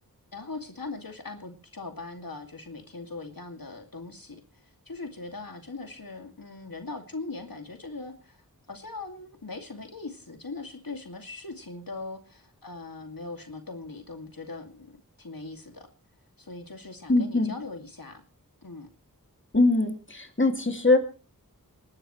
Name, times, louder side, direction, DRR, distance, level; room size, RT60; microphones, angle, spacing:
voice 1, 0.3-15.9 16.4-18.2 18.6-18.9, left 3 dB, 70° left, 5 dB, 2.4 m, -40 dB
voice 2, 17.1-17.5 19.5-21.0, left 2 dB, 35° left, 5 dB, 2.4 m, -22 dB
26.0 x 12.5 x 3.2 m, 0.36 s
wide cardioid pair, 40°, 37 cm